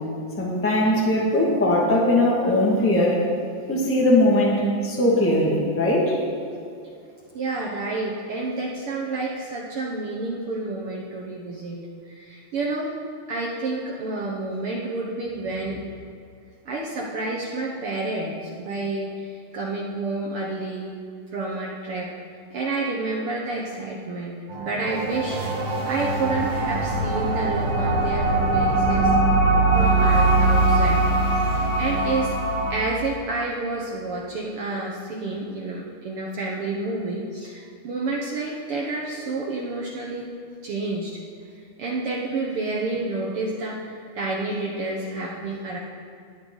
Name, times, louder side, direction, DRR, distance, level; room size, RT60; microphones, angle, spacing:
voice 1, 0.4-3.2 3.7-6.1, left 1 dB, 10° left, -3 dB, 0.7 m, -20 dB
voice 2, 7.3-11.8 12.0-12.9 13.3-15.8 16.6-20.9 21.3-22.1 22.5-25.4 25.9-29.1 29.7-31.0 31.5-32.3 32.7-40.2 40.6-41.2 41.8-45.8, right 2 dB, 85° right, -3 dB, 1.2 m, -29 dB
sound 1, 24.5-32.8, right 2 dB, 60° right, 3.7 m, -21 dB
19.5 x 8.1 x 3.9 m, 2.4 s
omnidirectional pair, 4.1 m